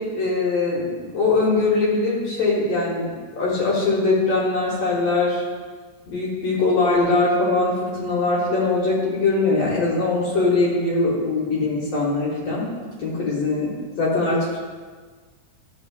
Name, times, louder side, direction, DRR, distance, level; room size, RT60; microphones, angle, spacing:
voice 1, 0.0-3.1 3.4-5.4 6.1-12.6 13.0-13.7 14.0-14.6, left 3 dB, 55° left, -6 dB, 2.6 m, -21 dB
14.0 x 8.4 x 2.5 m, 1.5 s
omnidirectional pair, 3.8 m